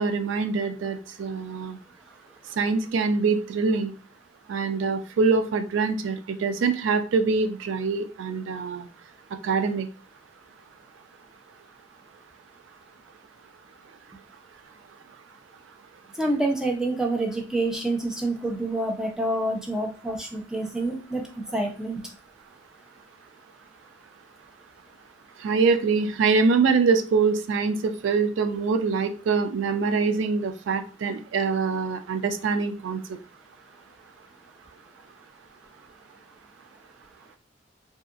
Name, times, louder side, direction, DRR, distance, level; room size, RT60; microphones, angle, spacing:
voice 1, 0.0-1.8 2.6-3.9 4.5-8.9 9.4-9.9 25.4-33.0, right 4 dB, 90° right, 9 dB, 0.4 m, -24 dB
voice 2, 16.2-22.0, right 2 dB, 5° right, 0 dB, 0.5 m, -27 dB
2.7 x 2.3 x 2.4 m, 0.36 s
head